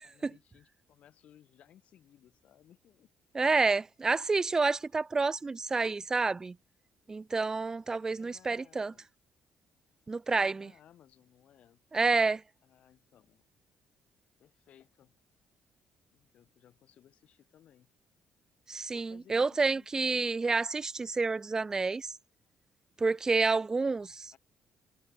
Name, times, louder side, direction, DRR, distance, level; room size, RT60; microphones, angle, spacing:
voice 1, 0.0-3.1 8.2-9.1 10.3-11.8 12.6-13.4 14.4-15.2 16.1-17.9 18.9-20.3 24.3-24.4, left 10 dB, 65° left, 3.7 m, -61 dB
voice 2, 3.3-6.6 7.1-8.9 10.1-10.7 11.9-12.4 18.7-22.2 23.0-24.3, right 3 dB, 25° right, 0.4 m, -29 dB
supercardioid pair, 75°, 2 cm